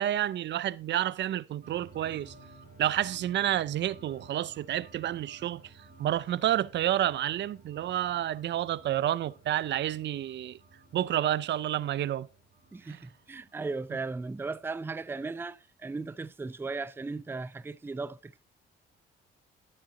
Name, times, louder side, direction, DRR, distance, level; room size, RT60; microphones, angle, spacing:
voice 1, 0.0-2.3 2.8-5.6 6.0-10.6 10.9-12.3 12.9-13.0, right 12 dB, 65° right, 0.5 m, -29 dB
sound 1, 1.6-15.6, right 3 dB, 45° right, 4.1 m, -55 dB
voice 2, 12.7-18.4, right 3 dB, 10° right, 0.4 m, -37 dB
11.5 x 8.7 x 3.8 m
cardioid pair, 90°, 20 cm